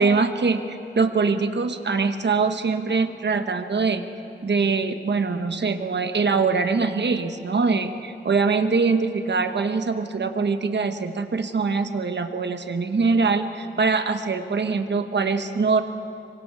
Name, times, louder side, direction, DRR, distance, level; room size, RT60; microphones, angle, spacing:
voice 1, 0.0-4.1 4.4-15.8, right 4 dB, 55° right, 8 dB, 1.1 m, -23 dB
25.5 x 24.0 x 4.8 m, 2.8 s
wide cardioid pair, 115°, 21 cm